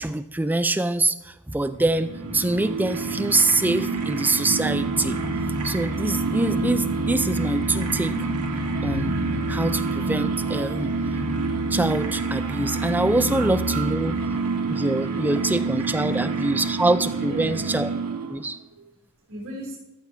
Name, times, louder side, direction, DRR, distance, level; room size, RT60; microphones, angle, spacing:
voice 1, 0.0-5.2 5.6-8.2 8.8-9.1 9.5-10.9 11.7-14.2 14.7-17.9 18.3-18.6, right 2 dB, 10° right, 10 dB, 0.3 m, -24 dB
sound 1, 1.7-10.3, left 1 dB, 90° left, 1.5 m, -41 dB
sound 2, 1.8-18.5, right 4 dB, 90° right, 1.3 m, -28 dB
sound 3, 4.6-14.4, left 3 dB, 75° left, 0.5 m, -34 dB
voice 2, 17.3-17.6 18.4-19.8, right 1 dB, 70° right, -6 dB, 4.1 m, -38 dB
13.5 x 6.8 x 3.5 m, 0.96 s
head